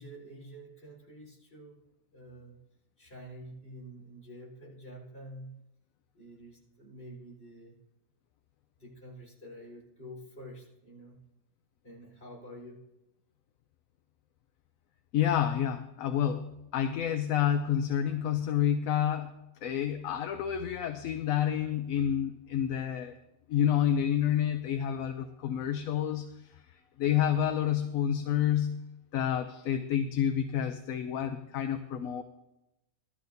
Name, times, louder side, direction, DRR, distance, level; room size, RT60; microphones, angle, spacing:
voice 1, 0.0-1.8 2.1-2.6 3.0-5.6 6.1-7.8 8.8-11.2 11.8-12.8, equal, 45° left, -5 dB, 4.1 m, -48 dB
voice 2, 15.1-19.3 19.6-23.2 23.5-28.8 29.1-32.2, left 10 dB, 75° left, 8 dB, 1.0 m, -29 dB
17.0 x 12.5 x 2.6 m, 0.92 s
omnidirectional pair, 1.5 m